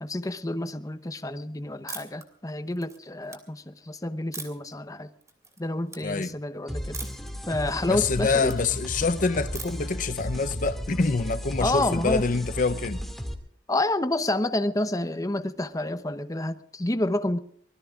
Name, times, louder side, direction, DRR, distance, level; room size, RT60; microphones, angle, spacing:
voice 1, 0.0-5.1 5.6-7.0 7.5-8.5 11.6-12.2 13.7-17.4, left 1 dB, 20° left, 0.9 m, -29 dB
sound 1, 1.9-2.2 2.7-3.4 4.3-4.7 5.2-5.6 5.9-6.0 6.9-7.3 7.7-8.6 9.5-9.9, right 4 dB, 20° right, 2.8 m, -40 dB
voice 2, 6.0-6.3 7.8-13.0, left 4 dB, 45° left, 0.7 m, -26 dB
sound 2, 6.7-13.3, equal, ahead, 2.2 m, -34 dB
25.0 x 19.5 x 2.5 m
head